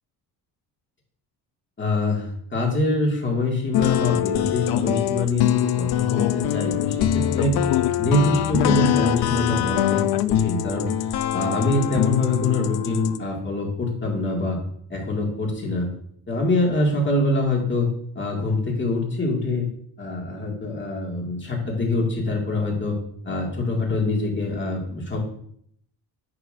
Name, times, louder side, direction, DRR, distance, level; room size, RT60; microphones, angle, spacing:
voice 1, 1.8-7.6 8.0-10.9 11.3-14.6 14.9-15.9 16.3-17.9 18.2-19.7 20.0-23.0 23.2-25.2, left 2 dB, 30° left, -1 dB, 2.1 m, -24 dB
sound 1, 3.7-13.2, left 12 dB, 65° left, 0.5 m, -23 dB
9.7 x 6.0 x 2.6 m, 0.66 s
cardioid pair, 120°, 41 cm